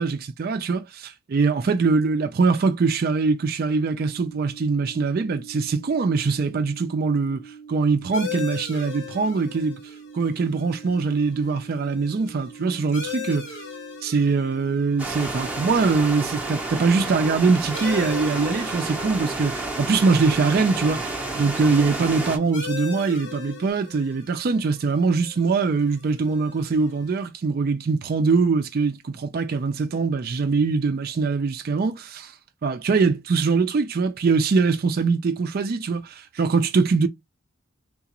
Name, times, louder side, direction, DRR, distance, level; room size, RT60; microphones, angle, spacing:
voice 1, 0.0-9.8 10.1-13.6 14.0-32.3 32.6-37.1, right 4 dB, 45° right, 0.3 m, -23 dB
sound 1, 3.7-23.7, right 6 dB, 80° left, 2.2 m, -45 dB
sound 2, 8.1-27.3, left 6 dB, 55° left, 1.1 m, -40 dB
sound 3, 15.0-22.4, right 2 dB, 5° right, 0.6 m, -30 dB
3.8 x 2.4 x 2.9 m
head